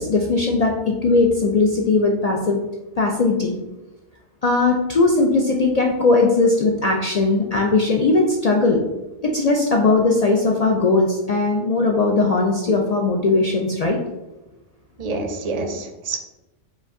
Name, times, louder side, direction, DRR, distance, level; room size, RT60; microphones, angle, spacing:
voice 1, 0.0-2.6 3.0-3.5 4.4-8.8 9.2-14.0, left 3 dB, 65° left, 0 dB, 0.4 m, -19 dB
voice 2, 15.0-16.2, right 3 dB, 45° right, 5 dB, 0.5 m, -27 dB
5.1 x 2.5 x 3.6 m, 1.0 s
omnidirectional pair, 1.2 m